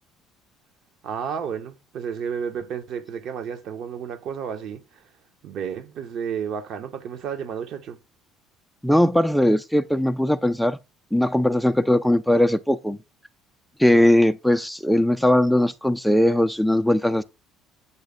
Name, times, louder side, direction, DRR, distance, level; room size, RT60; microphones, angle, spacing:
voice 1, 1.0-5.0 5.4-8.0, right 7 dB, 50° right, 0.8 m, -32 dB
voice 2, 8.8-10.8 11.1-13.0 13.8-17.2, left 1 dB, ahead, 0.4 m, -19 dB
8.0 x 3.4 x 3.6 m
figure-of-eight pair, 55°, 0 cm